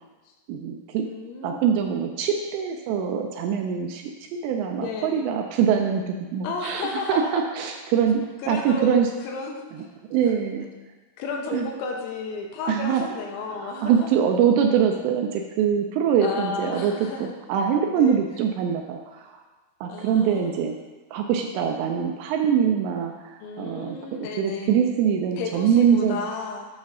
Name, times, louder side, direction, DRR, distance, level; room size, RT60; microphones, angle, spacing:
voice 1, 0.5-1.0 1.4-8.2 8.5-9.1 9.7-9.9 10.1-10.7 11.5-11.7 12.7-13.0 13.5-16.9 17.2-19.4 19.8-20.8 21.1-24.0 24.4-26.2, right 7 dB, 85° right, 3 dB, 2.5 m, -23 dB
voice 2, 1.0-1.6 4.8-5.2 6.4-7.3 8.4-8.9 9.2-9.9 11.2-14.1 16.2-17.4 17.9-18.2 19.9-20.7 23.4-24.8 25.4-26.7, left 4 dB, 85° left, 2 dB, 3.1 m, -33 dB
8.3 x 3.2 x 6.0 m, 1.3 s
omnidirectional pair, 5.5 m